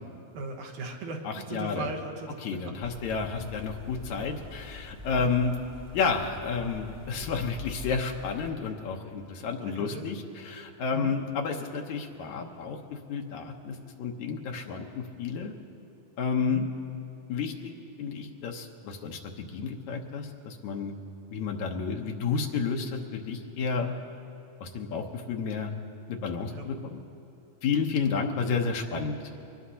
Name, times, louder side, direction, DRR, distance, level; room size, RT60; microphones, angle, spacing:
voice 1, 0.3-2.4 2.6-3.1 9.6-10.1 10.9-11.1 16.4-16.7 26.5-26.6 27.9-28.2, right 3 dB, 85° right, 0 dB, 2.7 m, -38 dB
voice 2, 1.2-1.9 2.4-5.5 5.9-15.5 16.2-16.7 17.3-17.7 18.0-20.9 21.3-23.9 24.6-25.8 26.1-27.0 27.6-29.2, left 5 dB, 80° left, 2 dB, 2.3 m, -31 dB
sound 1, 2.8-8.5, left 4 dB, 50° right, 0.7 m, -44 dB
24.0 x 19.0 x 2.8 m, 2.7 s
omnidirectional pair, 3.3 m